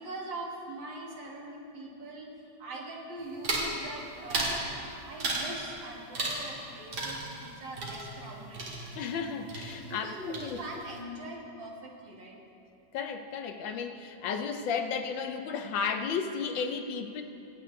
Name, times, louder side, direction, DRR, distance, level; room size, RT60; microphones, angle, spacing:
voice 1, 0.0-4.7 4.9-8.6 9.7-12.4, right 1 dB, 65° right, -2 dB, 2.2 m, -42 dB
sound 1, 3.4-3.8 4.3-4.6 5.2-5.6 6.1-6.7 6.9-9.2 9.5-10.1 10.3-10.9, right 2 dB, 85° right, 2.5 m, -34 dB
voice 2, 9.0-10.6 12.9-17.2, left 6 dB, 75° left, 6 dB, 1.4 m, -33 dB
24.0 x 8.2 x 3.1 m, 2.7 s
omnidirectional pair, 2.2 m